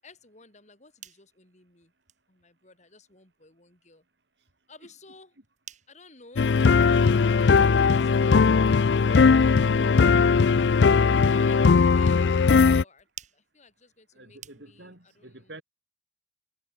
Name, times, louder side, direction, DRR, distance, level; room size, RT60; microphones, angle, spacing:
voice 1, 0.0-1.9 2.3-4.0 4.7-5.4 5.9-6.5 11.2-13.1 13.3-15.6, left 3 dB, 40° left, 6.7 m, -54 dB
sound 1, 0.8-15.0, right 9 dB, 45° right, 6.1 m, -55 dB
sound 2, 6.4-12.8, left 5 dB, 75° left, 0.5 m, -19 dB
voice 2, 8.9-10.4 14.1-15.6, right 1 dB, 75° right, 5.5 m, -47 dB
head